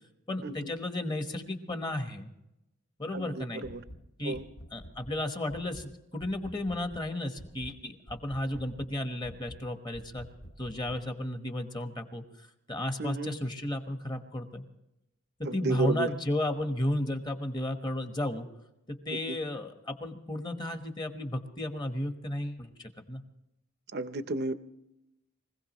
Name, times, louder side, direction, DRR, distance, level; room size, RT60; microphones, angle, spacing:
voice 1, 0.3-2.3 3.0-3.6 4.2-4.4 4.7-10.3 10.6-14.6 15.4-18.5 18.9-23.2, left 1 dB, 20° left, 6 dB, 1.1 m, -33 dB
voice 2, 3.1-3.8 4.2-4.4 13.0-13.4 15.4-16.1 19.3-19.4 23.9-24.5, right 3 dB, 50° right, 12 dB, 0.7 m, -32 dB
sound 1, 3.6-4.0 4.3-5.2 5.5-5.9 6.2-7.1 7.4-7.8 8.1-8.9 9.2-9.6 9.9-11.0, equal, 75° left, 1.5 m, -48 dB
24.0 x 16.5 x 3.0 m, 0.89 s
head